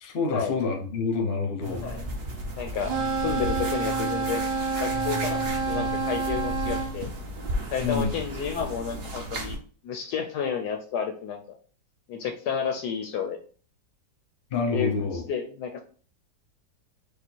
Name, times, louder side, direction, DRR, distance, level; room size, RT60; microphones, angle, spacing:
voice 1, 0.0-1.8 7.8-8.1 14.5-15.2, left 4 dB, 45° left, 3 dB, 0.8 m, -27 dB
sound 1, 1.6-9.6, right 1 dB, 50° right, 0.8 m, -34 dB
voice 2, 2.6-4.5 4.8-5.4 5.6-7.1 7.7-9.6 9.8-11.6 12.1-13.4 14.7-15.8, left 7 dB, 70° left, 5 dB, 1.0 m, -31 dB
sound 2, 2.8-6.9, right 4 dB, 80° right, 1.3 m, -28 dB
5.0 x 2.4 x 4.4 m, 0.42 s
omnidirectional pair, 2.0 m